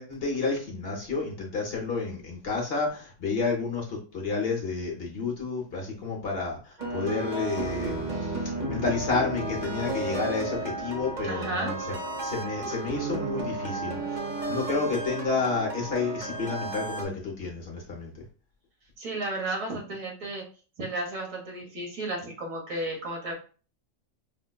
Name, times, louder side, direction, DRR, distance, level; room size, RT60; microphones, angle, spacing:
voice 1, 0.0-11.9 12.2-18.1, left 4 dB, 55° left, -1 dB, 0.9 m, -30 dB
sound 1, 6.8-17.0, right 2 dB, 40° right, 0.8 m, -33 dB
voice 2, 11.2-11.8 19.0-20.4 20.8-23.3, right 2 dB, 75° right, -1 dB, 1.4 m, -33 dB
4.9 x 2.0 x 2.2 m, 0.38 s
omnidirectional pair, 1.4 m